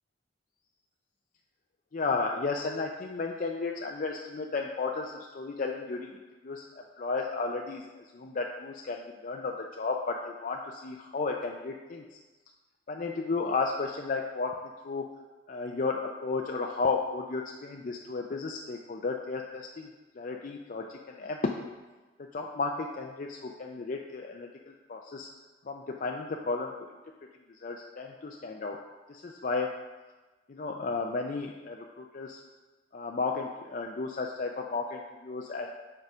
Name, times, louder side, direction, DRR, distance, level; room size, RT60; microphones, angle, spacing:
voice 1, 1.9-6.1 6.4-6.6 7.0-12.0 12.9-14.6 14.8-15.1 15.5-19.9 20.2-21.7 22.3-25.3 25.7-26.9 27.6-28.8 29.1-29.7 30.5-32.4 32.9-35.7, left 4 dB, 45° left, 1 dB, 0.4 m, -33 dB
6.7 x 4.7 x 4.8 m, 1.2 s
head